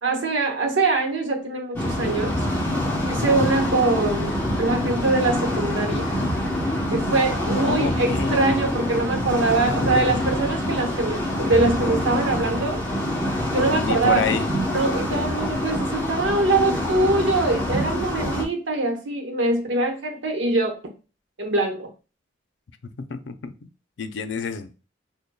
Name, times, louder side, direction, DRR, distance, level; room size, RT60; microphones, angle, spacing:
voice 1, 0.0-2.5 3.0-6.1 6.9-12.8 13.5-14.2 14.7-20.8 21.4-21.9, right 2 dB, 90° right, 0.9 m, -23 dB
sound 1, 1.8-18.4, left 1 dB, 10° left, 0.8 m, -25 dB
voice 2, 7.5-8.4 13.8-14.5 23.1-23.5 24.0-24.8, left 5 dB, 75° left, 0.5 m, -28 dB
5.1 x 2.2 x 2.2 m
head